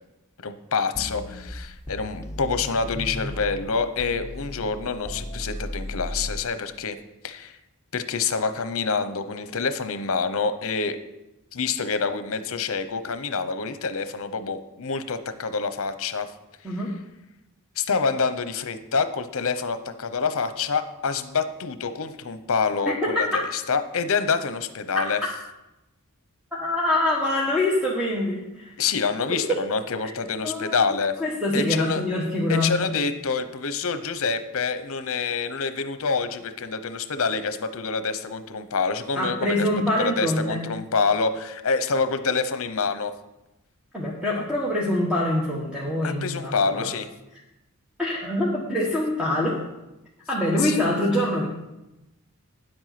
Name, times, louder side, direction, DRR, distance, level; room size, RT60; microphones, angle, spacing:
voice 1, 0.4-6.9 7.2-7.6 7.9-11.0 11.5-16.3 17.8-25.2 28.8-31.2 31.5-32.0 32.5-43.1 46.0-47.1 50.6-50.7, left 5 dB, 65° left, 11 dB, 0.8 m, -27 dB
sound 1, 0.9-3.7 4.0-6.4, left 1 dB, 15° left, 1.2 m, -35 dB
voice 2, 23.0-23.4 24.9-25.0 26.6-28.7 30.0-30.1 30.4-30.9 31.2-32.9 39.1-40.6 43.9-46.9 48.0-49.6 50.3-51.5, left 1 dB, 5° right, -4 dB, 1.4 m, -25 dB
9.8 x 7.9 x 5.9 m, 0.95 s
head